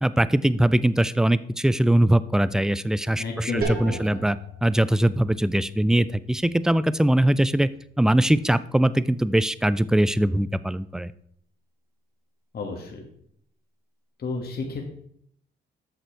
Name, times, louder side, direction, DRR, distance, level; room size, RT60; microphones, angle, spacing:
voice 1, 0.0-4.4 4.6-7.7 8.0-11.1, right 1 dB, 5° right, 16 dB, 0.3 m, -21 dB
voice 2, 3.2-4.2 12.5-13.1 14.2-14.9, left 3 dB, 55° left, 1 dB, 1.8 m, -32 dB
sound 1, 3.6-9.1, right 2 dB, 50° right, 2.4 m, -39 dB
7.8 x 6.7 x 4.6 m, 0.67 s
cardioid pair, 90°, 20 cm